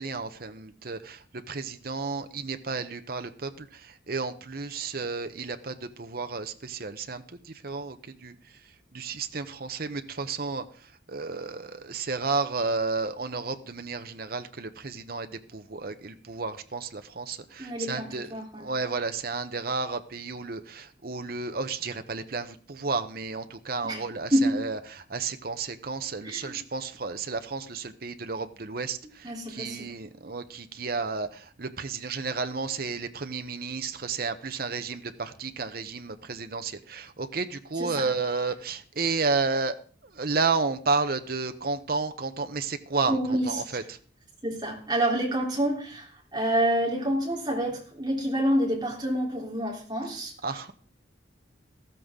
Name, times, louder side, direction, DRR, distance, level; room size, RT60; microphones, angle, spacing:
voice 1, 0.0-8.3 8.9-18.3 18.6-24.8 25.1-39.8 40.0-43.2 43.5-44.0 50.4-50.7, right 4 dB, 50° right, 8 dB, 0.8 m, -32 dB
voice 2, 17.6-18.7 23.8-24.0 24.3-24.6 26.2-26.6 29.2-29.9 37.8-38.1 43.1-43.8 44.4-50.3, right 1 dB, 20° right, -2 dB, 3.5 m, -28 dB
14.5 x 13.5 x 3.7 m, 0.43 s
head